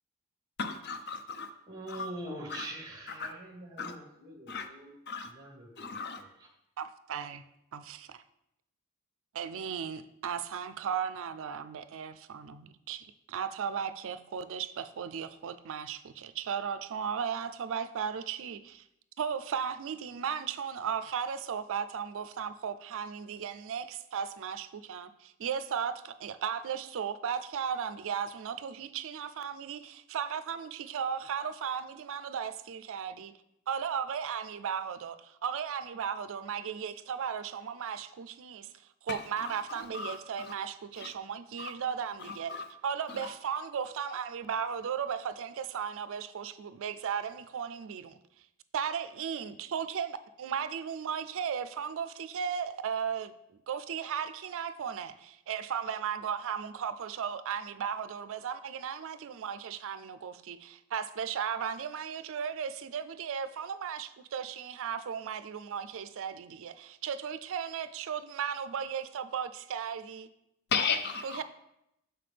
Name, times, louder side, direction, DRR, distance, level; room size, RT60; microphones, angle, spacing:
voice 1, 0.6-1.5 1.9-2.1 2.5-2.7 3.2-3.3 3.8-3.9 4.5-4.7 5.1-5.3 5.8-6.2 39.1-40.5 41.0-41.1 41.6-41.7 42.2-42.7 43.1-43.3 70.7-71.4, left 5 dB, 50° left, 0.6 m, -36 dB
voice 2, 1.7-4.9 5.2-6.5, right 1 dB, 15° right, 1.1 m, -44 dB
voice 3, 6.8-7.4 7.7-8.2 9.3-18.8 19.2-33.3 33.7-38.7 39.0-42.5 42.8-48.2 48.7-70.3 71.2-71.4, right 7 dB, 60° right, 0.4 m, -36 dB
6.8 x 5.8 x 3.3 m
head